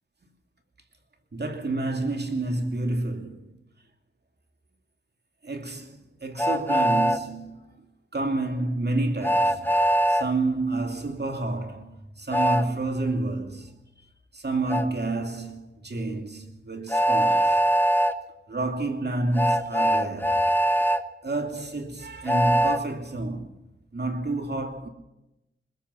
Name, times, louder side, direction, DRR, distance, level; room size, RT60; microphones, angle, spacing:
voice 1, 1.3-3.5 5.4-7.8 8.1-9.7 10.1-13.7 14.0-14.1 14.3-17.6 18.5-20.4 21.2-23.6 23.9-24.9, right 2 dB, 50° right, 2.6 m, -29 dB
Train, 6.4-7.2 9.2-10.3 12.3-12.6 14.7-14.8 16.9-18.1 19.3-21.0 22.3-22.8, equal, 10° left, 1.1 m, -22 dB
22.0 x 20.5 x 5.8 m
wide cardioid pair, 55°, 21 cm